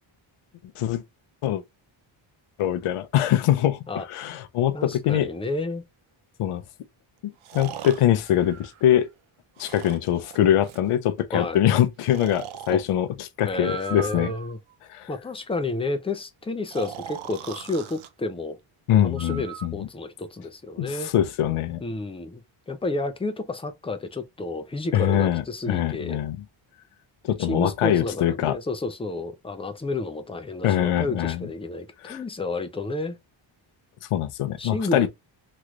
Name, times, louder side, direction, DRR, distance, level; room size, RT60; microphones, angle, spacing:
voice 1, 2.6-5.3 6.4-6.6 7.5-9.1 9.6-14.3 14.9-15.1 18.9-19.9 20.8-21.8 24.9-26.4 27.2-28.6 30.6-31.5 32.0-32.2 34.1-35.1, left 11 dB, 85° left, 0.6 m, -23 dB
voice 2, 4.7-5.8 11.3-11.6 12.7-12.8 13.4-14.6 15.1-18.6 19.0-21.1 21.8-22.4 22.7-26.2 27.4-33.2 34.6-35.1, left 2 dB, 15° left, 0.4 m, -31 dB
Breathing, 5.5-5.6 7.4-9.1 9.6-10.9 12.0-12.8 13.6-14.7 16.7-18.1 19.2-19.7, right 10 dB, 70° right, 0.6 m, -39 dB
3.1 x 3.1 x 2.3 m
wide cardioid pair, 135°, 50 cm